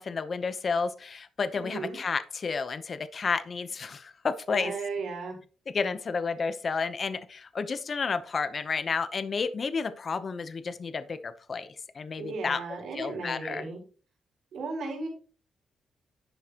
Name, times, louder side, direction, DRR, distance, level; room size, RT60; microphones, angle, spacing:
voice 1, 0.0-4.7 5.7-12.6 12.9-13.7, left 5 dB, 40° left, 12 dB, 0.8 m, -31 dB
voice 2, 1.6-2.0 4.5-5.4 12.2-13.8 14.5-15.1, right 4 dB, 80° right, 1 dB, 3.9 m, -35 dB
11.0 x 7.9 x 2.9 m, 0.36 s
wide cardioid pair, 135°, 0 cm